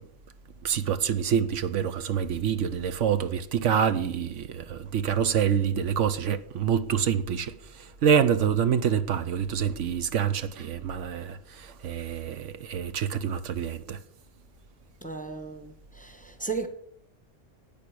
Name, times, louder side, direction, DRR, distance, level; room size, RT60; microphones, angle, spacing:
voice 1, 0.6-7.5 8.0-11.4 11.8-14.0, right 8 dB, 75° right, 1.1 m, -26 dB
voice 2, 15.0-16.7, right 4 dB, 5° left, 1.1 m, -35 dB
11.0 x 8.8 x 8.4 m
omnidirectional pair, 1.3 m